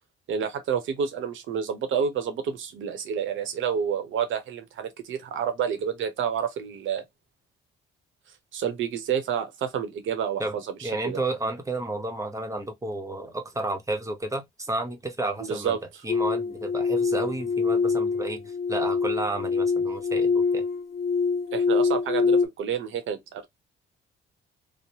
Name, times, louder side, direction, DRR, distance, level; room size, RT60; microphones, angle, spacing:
voice 1, 0.3-7.0 8.5-11.2 15.4-15.8 21.5-23.5, right 7 dB, 75° right, 0.9 m, -29 dB
voice 2, 10.4-15.8 16.0-20.6, right 2 dB, 15° right, 0.9 m, -32 dB
sound 1, 16.1-22.5, left 5 dB, 55° left, 0.6 m, -25 dB
3.2 x 2.1 x 2.7 m
cardioid pair, 90°, 20 cm